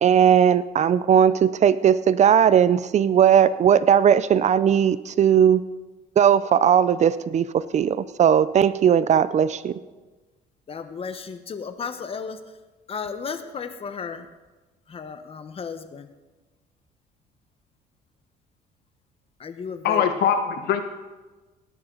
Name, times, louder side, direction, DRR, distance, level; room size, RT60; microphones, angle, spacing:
voice 1, 0.0-5.6 6.2-9.7, right 8 dB, 45° right, 16 dB, 0.5 m, -18 dB
voice 2, 10.7-12.4 12.9-14.3 14.9-16.1 19.4-20.2, left 5 dB, 35° left, 9 dB, 1.1 m, -34 dB
voice 3, 19.8-20.8, left 7 dB, 70° left, 8 dB, 1.3 m, -22 dB
19.0 x 11.0 x 4.0 m, 1.2 s
cardioid pair, 110°, 17 cm